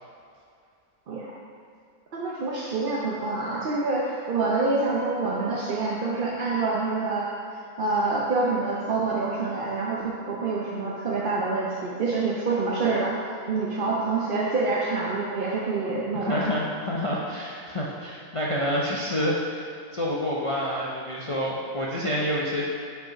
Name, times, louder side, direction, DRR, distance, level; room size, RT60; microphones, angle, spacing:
voice 1, 2.1-7.3 7.8-13.1 13.5-16.6, right 3 dB, 45° right, -5 dB, 0.8 m, -26 dB
voice 2, 16.1-22.6, left 1 dB, 35° left, -5 dB, 0.5 m, -28 dB
5.6 x 5.6 x 5.7 m, 2.3 s
omnidirectional pair, 1.5 m